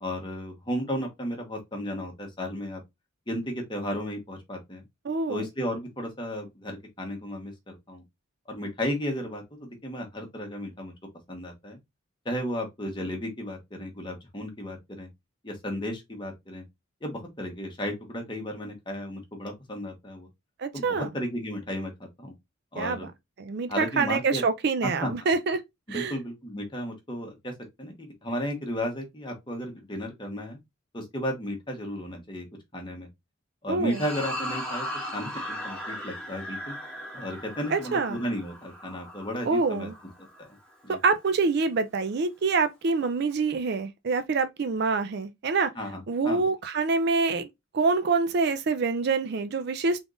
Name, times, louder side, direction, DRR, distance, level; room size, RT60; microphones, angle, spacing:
voice 1, 0.0-2.8 3.3-4.8 5.3-8.0 8.5-10.9 11.3-11.8 12.2-15.1 15.4-16.6 17.0-20.3 20.7-22.3 22.7-23.1 23.7-24.4 24.8-25.1 25.9-27.5 27.8-30.6 30.9-32.4 32.7-33.1 33.6-34.9 35.1-36.7 37.1-39.9 40.8-41.0 45.7-46.4, equal, 25° left, 1.1 m, -34 dB
voice 2, 5.1-5.5 20.6-21.1 22.8-23.1 23.4-25.6 25.9-26.1 33.7-34.0 37.7-38.2 39.5-39.9 40.9-45.7 46.1-47.5 47.7-50.0, right 4 dB, 50° right, 0.4 m, -26 dB
sound 1, 33.9-40.4, equal, 5° left, 1.3 m, -37 dB
3.7 x 3.5 x 2.4 m
head